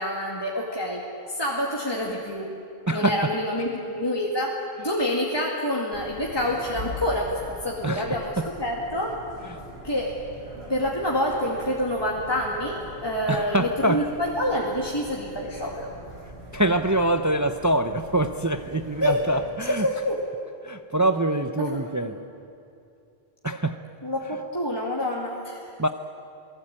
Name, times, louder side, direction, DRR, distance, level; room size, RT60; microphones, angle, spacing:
voice 1, 0.0-2.5 2.9-9.2 9.8-10.1 10.7-15.9 19.0-19.2 19.7-20.2 21.7-22.1 24.0-25.7, left 1 dB, 25° left, -3 dB, 2.3 m, -27 dB
voice 2, 2.9-3.3 7.8-8.4 9.5-9.6 13.3-14.1 16.5-19.9 20.6-22.2 23.4-23.8 25.8-25.9, right 1 dB, 20° right, 8 dB, 0.6 m, -24 dB
sound 1, 5.9-19.5, equal, 85° right, 5.6 m, -42 dB
28.0 x 18.5 x 8.9 m, 2.6 s
omnidirectional pair, 1.0 m